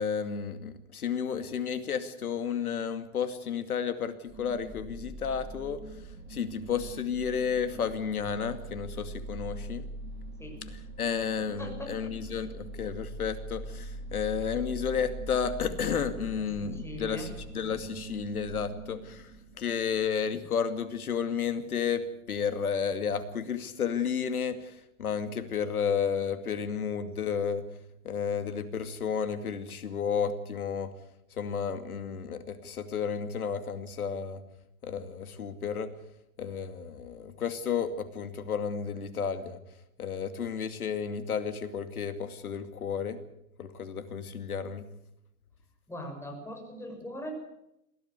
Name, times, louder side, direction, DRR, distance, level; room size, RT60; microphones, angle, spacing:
voice 1, 0.0-9.8 11.0-27.7 28.0-30.9 31.3-34.4 34.8-35.9 36.4-39.6 40.0-43.2 43.6-44.9, left 7 dB, 75° left, 10 dB, 2.5 m, -32 dB
sound 1, 4.3-20.2, right 2 dB, 30° right, 7.6 m, -42 dB
voice 2, 11.4-12.1 16.4-17.3 45.9-47.3, left 1 dB, 5° left, 3 dB, 6.5 m, -41 dB
22.0 x 16.0 x 8.1 m, 0.83 s
hypercardioid pair, 105°, 44 cm